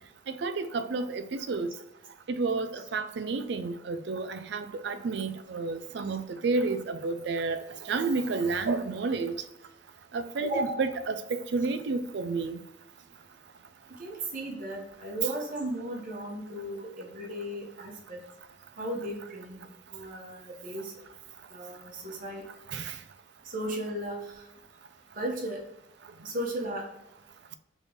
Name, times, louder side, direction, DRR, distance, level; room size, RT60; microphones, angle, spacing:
voice 1, 0.4-1.7 2.4-7.6 7.9-9.3 10.1-12.6 22.7-22.8, right 4 dB, 60° right, 0.4 m, -30 dB
voice 2, 10.4-10.8 14.0-18.2 18.8-19.6 19.9-20.9 21.5-22.4 23.4-24.2 25.1-25.6 26.2-26.8, right 1 dB, 45° right, 1.0 m, -35 dB
3.6 x 3.4 x 3.9 m
head